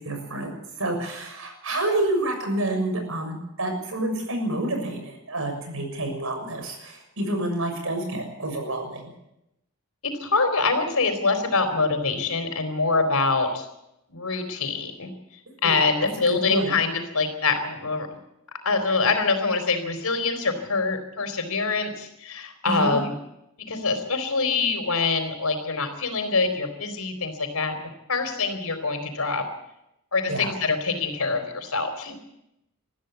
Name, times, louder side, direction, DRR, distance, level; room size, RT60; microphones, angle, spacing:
voice 1, 0.0-9.1 15.6-15.7 16.0-16.7 22.6-23.0 30.3-30.5, right 1 dB, 70° right, 5 dB, 6.7 m, -28 dB
voice 2, 10.0-13.7 14.1-15.1 15.6-18.1 18.5-23.1 23.7-27.7 28.1-29.4 30.1-32.2, left 4 dB, 90° left, 7 dB, 4.2 m, -25 dB
21.5 x 14.5 x 8.3 m, 0.85 s
head